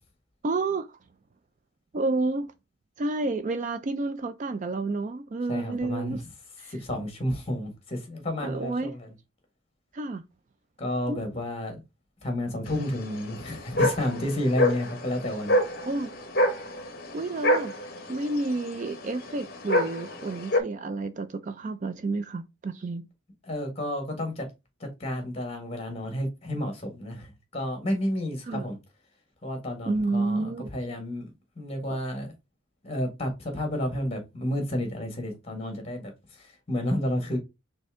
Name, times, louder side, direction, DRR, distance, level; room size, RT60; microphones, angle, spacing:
voice 1, 0.4-1.0 1.9-2.5 3.0-6.2 6.6-6.7 8.4-8.9 9.9-10.2 11.1-11.2 15.9-16.1 17.1-17.7 18.1-23.1 28.5-28.7 29.9-30.7, right 3 dB, 35° right, 0.3 m, -30 dB
voice 2, 5.5-6.2 6.7-9.1 10.8-11.8 12.2-15.6 23.4-24.5 24.8-28.8 29.4-31.2 31.5-32.3 32.8-37.4, left 1 dB, 30° left, 1.6 m, -31 dB
sound 1, 12.7-20.6, left 1 dB, 45° left, 0.9 m, -27 dB
4.3 x 3.4 x 3.6 m
head